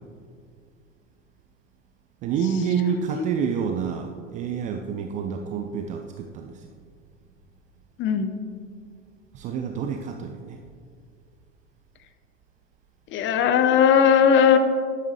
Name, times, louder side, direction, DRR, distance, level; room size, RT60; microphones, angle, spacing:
voice 1, 2.2-6.5 9.3-10.6, right 7 dB, 20° right, 5 dB, 0.4 m, -28 dB
voice 2, 8.0-8.4 13.1-14.6, left 7 dB, 30° left, 8 dB, 0.9 m, -18 dB
13.0 x 10.5 x 3.2 m, 2.2 s
figure-of-eight pair, 85°, 40 cm